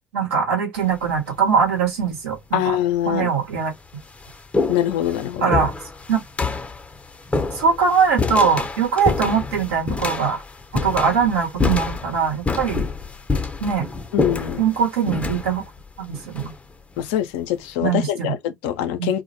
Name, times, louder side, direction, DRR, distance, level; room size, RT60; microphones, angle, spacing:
voice 1, 0.1-2.6 3.1-3.7 5.4-5.7 6.1-6.2 7.5-10.4 10.7-12.8 13.6-13.9 14.6-15.7 16.0-16.5 17.8-18.3 19.0-19.1, right 6 dB, 75° right, 1.0 m, -21 dB
sound 1, 0.8-1.2 2.1-2.2 3.1-3.2 3.6-17.1, left 3 dB, 20° left, 0.6 m, -27 dB
voice 2, 2.5-3.3 4.7-5.5 14.1-14.6 17.0-19.2, left 11 dB, 65° left, 0.5 m, -24 dB
2.1 x 2.1 x 2.7 m
figure-of-eight pair, 60°, 7 cm